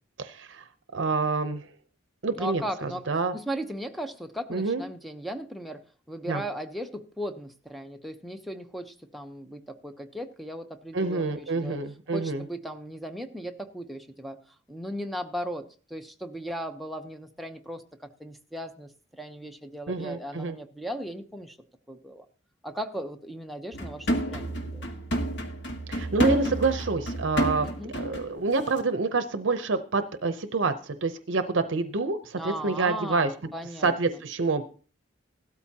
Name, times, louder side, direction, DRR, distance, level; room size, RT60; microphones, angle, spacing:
voice 1, 0.2-0.7 0.9-1.7 2.2-3.4 4.5-4.8 6.3-6.4 10.9-12.4 19.9-20.6 25.9-27.7 27.9-33.5 33.8-34.6, right 3 dB, 70° right, 9 dB, 0.7 m, -27 dB
voice 2, 2.3-3.0 3.3-11.8 12.1-14.4 14.7-15.6 15.9-17.8 18.2-21.6 21.9-22.3 22.6-24.9 27.6-27.9 32.4-33.9, equal, ahead, 7 dB, 0.9 m, -37 dB
sound 1, 23.7-28.3 28.7-28.8, right 1 dB, 65° left, 1.7 m, -30 dB
16.0 x 13.0 x 2.9 m, 0.40 s
head